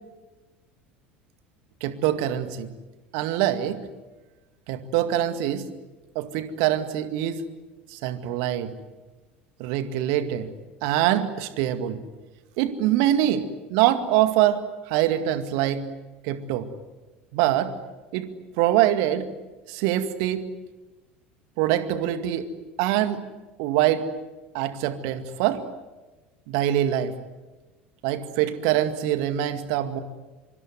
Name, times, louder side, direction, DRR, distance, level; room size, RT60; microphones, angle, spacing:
voice 1, 1.8-2.7 3.1-3.8 4.7-5.7 6.2-7.4 7.9-8.7 9.6-10.5 10.8-12.0 12.6-15.9 16.2-16.7 17.3-17.7 18.1-18.3 18.6-19.3 19.7-20.4 21.6-22.5 22.8-23.2 23.6-24.1 24.5-25.6 26.5-27.1 28.0-30.0, right 12 dB, 55° right, 10 dB, 2.1 m, -24 dB
25.5 x 24.5 x 9.5 m, 1.2 s
figure-of-eight pair, 70°, 6 cm